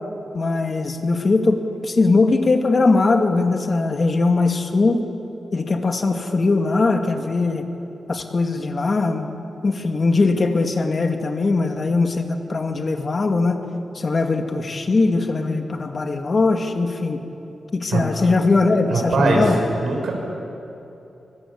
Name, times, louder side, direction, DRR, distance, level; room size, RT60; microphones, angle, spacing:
voice 1, 0.3-5.0 5.5-7.6 8.1-9.3 9.6-13.6 13.9-17.2 17.7-19.6, left 3 dB, 40° left, 4 dB, 2.2 m, -20 dB
voice 2, 18.9-19.4 19.8-20.1, right 3 dB, 75° right, 0 dB, 6.0 m, -20 dB
25.0 x 20.5 x 8.7 m, 2.9 s
wide cardioid pair, 120°, 0 cm